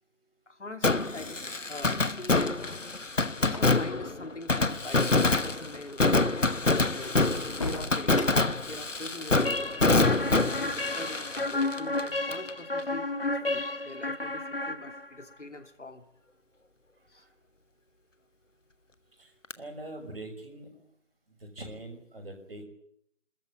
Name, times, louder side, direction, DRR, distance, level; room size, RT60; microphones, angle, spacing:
voice 1, 0.5-2.6 3.4-7.2 7.6-10.2 10.4-16.0 17.1-17.3, left 2 dB, 75° left, 7 dB, 2.7 m, -43 dB
Fireworks, 0.8-12.5 12.8-12.9 19.5-19.6, left 3 dB, 90° left, 1.3 m, -26 dB
sound 1, 2.6-3.9 5.1-5.5 5.7-5.9 6.5-6.6 7.0-8.7, left 2 dB, 25° left, 1.8 m, -39 dB
sound 2, 9.4-15.3, left 2 dB, 50° left, 1.1 m, -32 dB
voice 2, 19.2-20.9 21.4-22.6, right 1 dB, 50° right, 2 dB, 6.5 m, -43 dB
27.5 x 14.0 x 9.8 m, 0.73 s
figure-of-eight pair, 165°, 36 cm